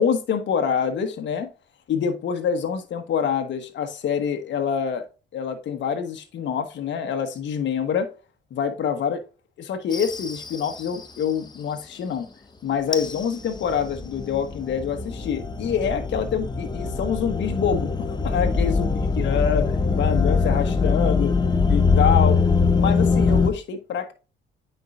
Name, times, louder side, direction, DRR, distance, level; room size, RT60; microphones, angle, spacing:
voice 1, 0.0-1.5 1.9-5.0 5.3-8.1 8.5-9.2 9.6-12.3 12.6-21.3 21.7-22.4 22.8-24.1, left 7 dB, 65° left, 1.3 m, -26 dB
sound 1, 9.9-11.0 12.9-23.5, left 4 dB, 20° left, 0.9 m, -23 dB
9.2 x 4.6 x 2.5 m
cardioid pair, 90°, 20 cm